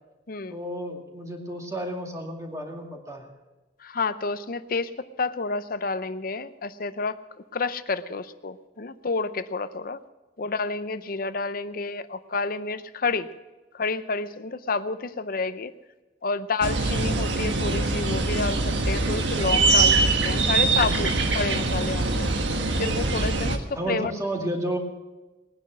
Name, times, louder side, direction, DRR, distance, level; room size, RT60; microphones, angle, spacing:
voice 1, 0.5-3.3 23.8-24.8, right 1 dB, 20° right, 1 dB, 2.2 m, -31 dB
voice 2, 3.8-7.1 7.5-10.0 10.4-13.3 13.7-15.7 16.2-20.0 20.2-22.3 22.8-24.1, left 4 dB, 50° left, 13 dB, 0.7 m, -29 dB
sound 1, 16.6-23.6, right 3 dB, 75° right, 1.4 m, -23 dB
20.0 x 10.0 x 6.2 m, 1.1 s
head